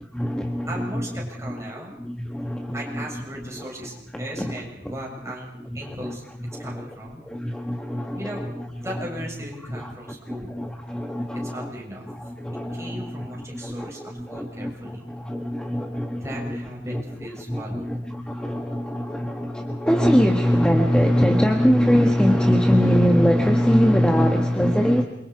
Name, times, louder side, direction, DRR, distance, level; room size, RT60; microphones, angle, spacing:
voice 1, 0.1-1.0 1.4-3.2 3.5-3.7 4.1-4.9 5.6-9.0 9.7-9.9 10.3-11.7 12.1-17.0 17.5-25.0, equal, 5° left, 3 dB, 1.4 m, -23 dB
voice 2, 0.7-1.9 2.7-5.5 5.7-6.2 6.6-7.2 8.1-8.4 8.8-10.6 11.5-12.1 12.7-15.1 16.2-18.1, right 1 dB, 15° right, -3 dB, 7.1 m, -37 dB
28.0 x 24.5 x 4.8 m, 0.84 s
head